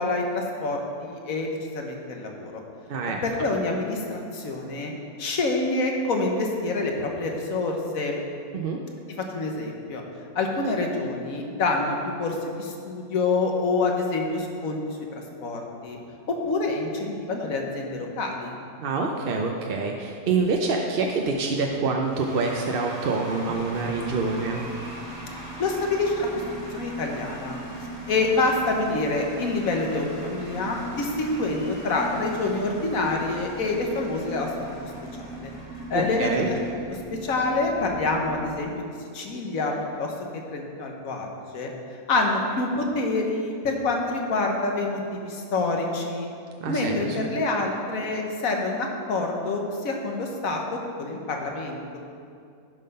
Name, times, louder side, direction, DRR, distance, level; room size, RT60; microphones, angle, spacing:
voice 1, 0.0-2.6 3.0-4.9 5.2-8.2 9.3-10.0 10.3-16.0 16.3-18.6 25.3-27.6 28.1-34.5 34.8-34.9 35.2-35.5 35.9-36.5 37.1-38.7 39.1-39.7 40.0-40.1 40.5-41.7 42.1-46.3 46.7-52.0, left 3 dB, 65° left, 2 dB, 1.5 m, -27 dB
voice 2, 2.9-3.2 8.5-8.8 18.8-24.7 36.2-36.5 46.6-47.2, right 4 dB, 55° right, 1 dB, 0.7 m, -26 dB
Cheering / Applause / Crowd, 22.0-37.7, equal, 35° left, 2.5 m, -43 dB
sound 1, 23.4-38.4, right 1 dB, 75° right, 1.3 m, -40 dB
11.0 x 5.8 x 5.4 m, 2.4 s
omnidirectional pair, 1.6 m